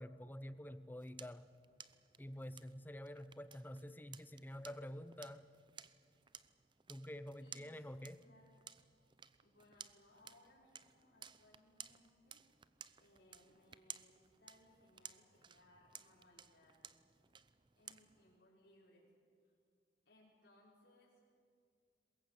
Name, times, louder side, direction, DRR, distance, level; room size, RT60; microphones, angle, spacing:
voice 1, 0.0-1.5 2.2-5.5 6.9-8.2, equal, 10° left, 13 dB, 0.7 m, -48 dB
sound 1, 0.6-18.4, right 8 dB, 25° right, 0.6 m, -58 dB
voice 2, 7.4-8.5 9.4-12.4 13.0-16.9 17.8-19.1 19.4-19.5 20.1-21.2, left 1 dB, 70° left, -6 dB, 5.4 m, -67 dB
22.5 x 21.5 x 8.4 m, 2.3 s
head